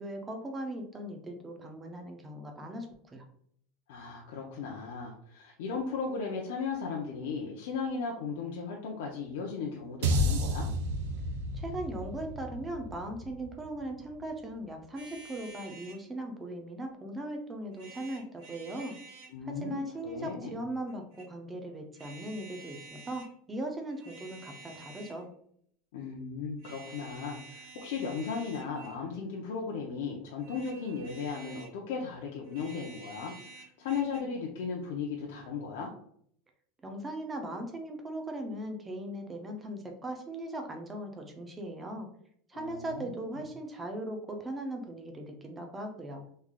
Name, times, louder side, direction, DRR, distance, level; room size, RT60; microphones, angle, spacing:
voice 1, 0.0-3.3 11.5-19.0 19.4-25.3 36.8-42.1 42.5-46.2, right 1 dB, 10° right, 3 dB, 0.4 m, -39 dB
voice 2, 3.9-10.7 19.3-20.6 25.9-35.9 42.5-43.3, left 5 dB, 65° left, -2 dB, 0.6 m, -36 dB
sound 1, 10.0-14.4, equal, 75° right, 0.6 m, -32 dB
sound 2, 15.0-16.0 17.7-19.4 20.9-21.3 21.9-23.3 23.9-25.3 26.6-29.0 30.4-31.8 32.4-34.2, right 3 dB, 50° right, 1.0 m, -50 dB
3.2 x 2.3 x 3.6 m, 0.65 s
supercardioid pair, 180°, 0 cm